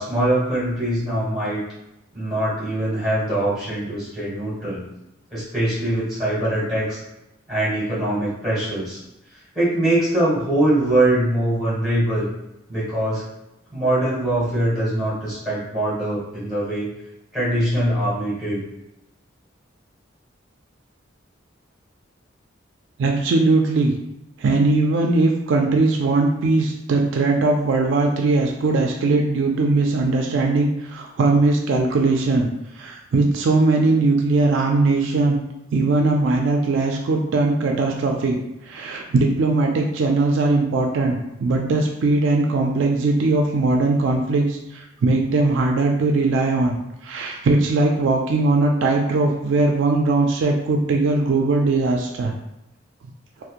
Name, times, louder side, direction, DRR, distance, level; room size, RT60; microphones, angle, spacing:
voice 1, 0.0-1.6 2.1-4.8 5.3-7.0 7.5-9.0 9.5-12.3 12.7-13.2 13.7-16.9 17.3-18.6, right 1 dB, 5° right, -9 dB, 1.4 m, -22 dB
voice 2, 23.0-23.9 24.4-32.5 32.7-35.4 35.7-38.4 38.6-46.8 47.0-52.3, right 3 dB, 70° right, 2 dB, 0.3 m, -20 dB
2.8 x 2.0 x 2.4 m, 0.89 s
head